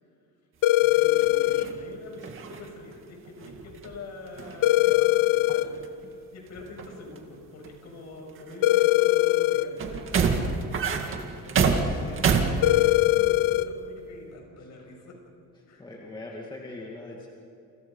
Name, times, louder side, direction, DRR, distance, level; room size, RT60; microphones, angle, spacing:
sound 1, 0.6-1.7 4.6-5.7 8.6-9.7 12.6-13.7, left 17 dB, 70° left, 0.9 m, -21 dB
sound 2, 0.8-4.0 4.3-5.2 5.5-6.1 6.6-7.2 7.6-7.7 8.4-9.0 9.8-13.1 13.4-13.6, right 5 dB, 35° right, 2.2 m, -28 dB
voice 1, 0.9-5.7 6.3-10.5 11.2-12.0 12.5-15.2 15.7-15.8, left 3 dB, 50° left, 2 dB, 6.9 m, -44 dB
voice 2, 11.9-12.2 15.8-17.3, left 2 dB, 15° left, -2 dB, 2.4 m, -41 dB
29.5 x 28.5 x 5.6 m, 2.8 s
cardioid pair, 175°, 35 cm